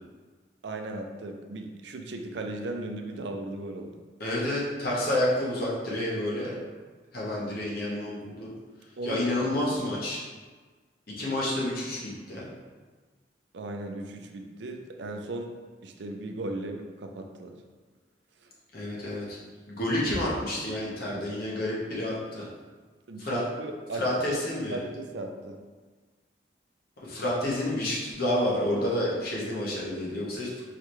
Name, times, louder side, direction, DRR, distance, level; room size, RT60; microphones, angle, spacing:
voice 1, 0.6-4.0 9.0-9.3 9.9-10.0 13.5-15.5 15.8-17.6 23.1-24.0 24.7-25.6, right 2 dB, 75° right, 4 dB, 0.5 m, -37 dB
voice 2, 4.2-6.5 7.1-8.5 9.0-10.2 11.2-12.5 18.7-19.4 19.7-22.4 23.2-23.4 24.0-24.8 27.0-30.6, left 1 dB, 55° left, -6 dB, 1.2 m, -29 dB
4.7 x 3.3 x 3.1 m, 1.4 s
head